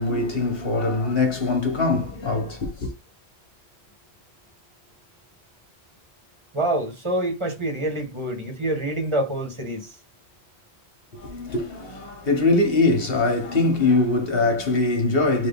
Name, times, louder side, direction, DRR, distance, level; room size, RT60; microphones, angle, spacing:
voice 1, 0.0-2.9 11.1-15.5, left 3 dB, 60° left, 1.7 m, -22 dB
voice 2, 6.5-10.0, right 1 dB, 25° right, 1.7 m, -26 dB
3.8 x 3.1 x 3.7 m
omnidirectional pair, 1.1 m